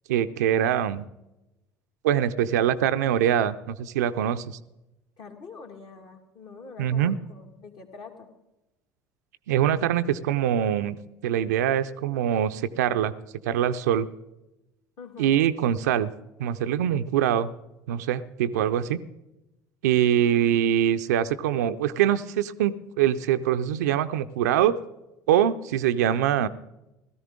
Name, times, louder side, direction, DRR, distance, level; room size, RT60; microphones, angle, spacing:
voice 1, 0.1-1.1 2.0-4.6 6.8-7.2 9.5-11.0 11.2-13.1 13.4-14.1 15.2-16.1 16.4-17.5 17.9-19.0 19.8-24.8 25.3-26.5, right 10 dB, 70° right, 11 dB, 0.5 m, -23 dB
voice 2, 5.2-8.3 15.0-15.5, left 4 dB, 50° left, 2 dB, 2.1 m, -45 dB
16.5 x 14.0 x 3.6 m, 0.94 s
figure-of-eight pair, 65°, 9 cm